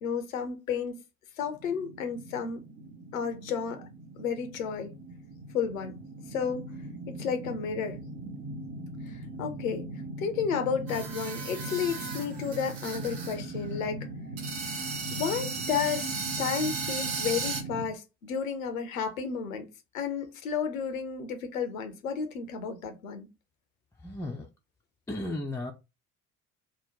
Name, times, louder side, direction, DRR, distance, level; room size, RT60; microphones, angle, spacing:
voice 1, 0.0-1.0 1.4-2.6 3.1-3.9 4.2-4.9 5.5-5.9 6.3-6.7 7.1-8.0 9.1-9.8 10.2-14.1 15.1-16.1 16.4-19.7 19.9-23.3, left 6 dB, 75° left, 0.8 m, -32 dB
sound 1, 1.4-17.9, right 2 dB, 35° right, 0.8 m, -40 dB
sound 2, 10.9-13.4 13.6-13.7 14.4-17.6, right 4 dB, 60° right, 1.2 m, -36 dB
voice 2, 24.0-24.5 25.1-25.7, left 2 dB, 5° left, 0.5 m, -34 dB
3.7 x 2.2 x 4.4 m
figure-of-eight pair, 55°, 41 cm